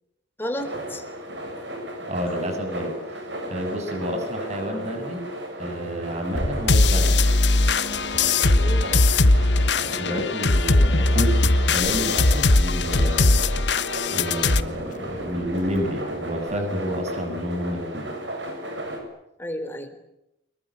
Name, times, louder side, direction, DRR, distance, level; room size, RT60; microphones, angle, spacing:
voice 1, 0.4-1.0 4.7-4.8 8.5-9.1 19.4-20.0, equal, 10° left, 6 dB, 3.7 m, -33 dB
sound 1, 0.6-19.0, right 1 dB, 80° right, 7.4 m, -35 dB
voice 2, 2.0-3.0 3.4-5.3 5.6-7.1 9.7-13.4 14.1-18.1, equal, 40° right, 5 dB, 7.0 m, -29 dB
sound 2, 6.3-9.2 9.4-16.7, equal, 45° left, 2.9 m, -39 dB
sound 3, 6.7-14.6, left 2 dB, 70° left, 1.2 m, -19 dB
23.5 x 22.5 x 9.8 m, 0.86 s
head